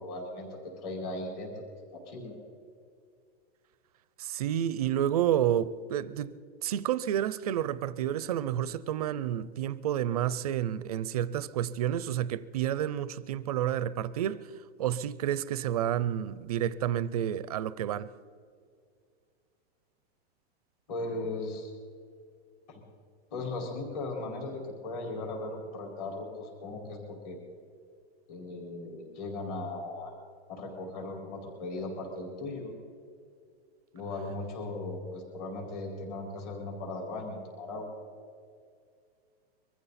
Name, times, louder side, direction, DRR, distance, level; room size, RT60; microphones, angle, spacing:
voice 1, 0.0-1.5 1.9-2.3 20.9-21.7 22.7-22.8 23.3-27.0 27.2-27.4 28.3-30.1 30.5-32.7 33.9-37.9, left 2 dB, 35° left, 4.7 m, -37 dB
voice 2, 4.2-14.4 14.8-18.1, right 10 dB, 35° right, 0.4 m, -30 dB
24.0 x 14.5 x 4.1 m
supercardioid pair, 175°, 33 cm